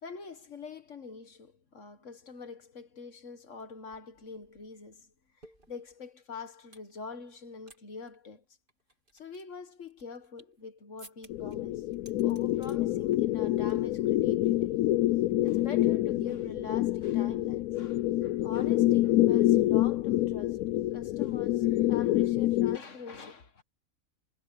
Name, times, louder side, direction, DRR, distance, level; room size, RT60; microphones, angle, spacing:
voice 1, 0.0-8.4 9.1-11.9 12.2-14.7 15.4-20.6 20.9-23.6, left 5 dB, 60° left, 1.9 m, -45 dB
sound 1, 3.6-3.7 3.9-6.9 7.3-8.2 8.7-10.6 11.0-11.6 11.9-12.8 13.1-13.4 13.7-14.0 14.3-14.5 15.5-16.2, right 1 dB, 35° right, 3.9 m, -57 dB
sound 2, 11.3-22.8, left 15 dB, 80° left, 1.0 m, -27 dB
omnidirectional pair, 1.5 m